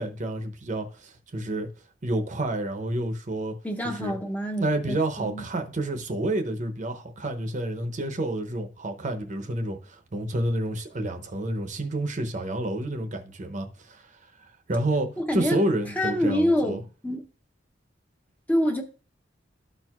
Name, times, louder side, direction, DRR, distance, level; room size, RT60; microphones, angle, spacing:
voice 1, 0.0-1.7 2.0-3.6 3.8-4.2 4.6-14.1 14.4-16.8, right 1 dB, 40° right, 0.7 m, -29 dB
voice 2, 3.6-5.4 15.2-15.6 16.0-17.2 18.5-18.8, equal, 10° left, 0.7 m, -26 dB
13.0 x 4.5 x 2.3 m
head